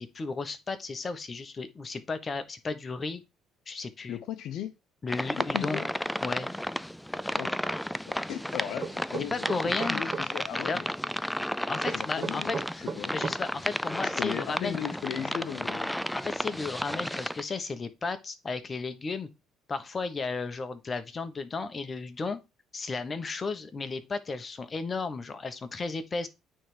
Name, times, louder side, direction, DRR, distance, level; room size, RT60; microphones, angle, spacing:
voice 1, 0.0-3.2 3.7-4.2 5.0-5.8 6.2-6.5 9.3-10.0 10.6-10.8 11.7-12.6 13.1-14.8 16.1-19.3 19.7-22.4 22.7-26.3, left 4 dB, 30° left, 1.1 m, -34 dB
voice 2, 4.1-4.7 5.4-5.9 7.4-7.6 8.1-10.9 11.9-13.1 14.0-15.9, left 10 dB, 70° left, 0.7 m, -37 dB
sound 1, 5.1-17.4, equal, 5° left, 0.3 m, -33 dB
sound 2, 8.8-10.3 11.8-13.4, right 5 dB, 40° right, 1.9 m, -34 dB
8.9 x 3.4 x 4.9 m
supercardioid pair, 85°, 0 cm